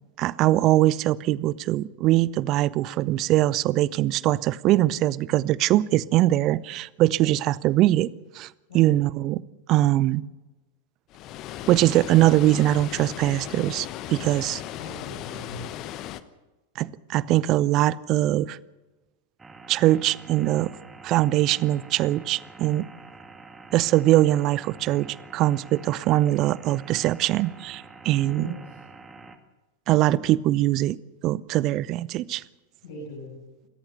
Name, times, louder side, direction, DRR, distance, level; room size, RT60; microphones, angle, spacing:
voice 1, 0.2-9.4 9.7-10.2 11.7-14.6 16.8-18.6 19.7-20.7 21.0-22.8 23.7-28.5 29.9-31.0 31.2-32.4, right 15 dB, 35° right, 22 dB, 0.6 m, -22 dB
Water, 11.1-16.2, left 12 dB, 40° left, 1.0 m, -37 dB
voice 2, 14.8-15.7 28.2-28.8 32.8-33.4, left 2 dB, 65° left, -1 dB, 6.7 m, -40 dB
sound 1, 19.4-29.4, right 3 dB, 15° right, 2.0 m, -46 dB
28.0 x 14.0 x 6.8 m, 1.1 s
figure-of-eight pair, 90°, 0 cm